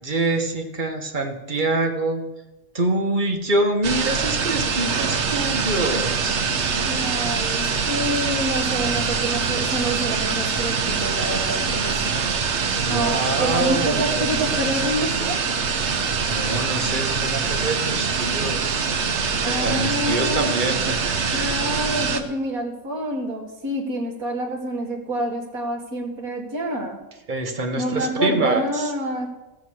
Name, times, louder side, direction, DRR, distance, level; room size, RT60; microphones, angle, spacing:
voice 1, 0.0-2.2 2.7-6.4 8.8-9.3 12.9-14.3 16.3-18.8 19.4-21.5 27.3-28.9, right 2 dB, 35° right, 4 dB, 1.4 m, -25 dB
sound 1, 3.8-22.2, right 5 dB, 55° right, 1.2 m, -24 dB
voice 2, 6.8-12.3 12.9-15.4 19.4-20.5 21.3-27.0 27.8-29.3, right 1 dB, 90° right, 0 dB, 2.3 m, -27 dB
16.0 x 6.7 x 6.3 m, 1.0 s
omnidirectional pair, 1.5 m